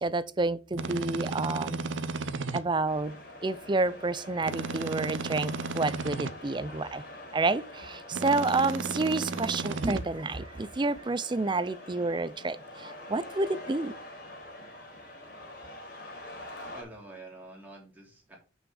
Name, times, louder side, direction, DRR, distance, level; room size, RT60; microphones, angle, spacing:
voice 1, 0.0-1.8 2.5-3.1 3.4-7.0 7.3-13.9, right 3 dB, 25° right, 0.5 m, -29 dB
sound 1, 0.7-2.6 4.4-6.3 8.1-10.0, right 3 dB, 80° right, 0.7 m, -34 dB
sound 2, 2.8-16.8, left 1 dB, 50° left, 3.7 m, -46 dB
voice 2, 16.7-18.4, right 2 dB, 10° right, 3.1 m, -48 dB
6.2 x 5.2 x 6.2 m
head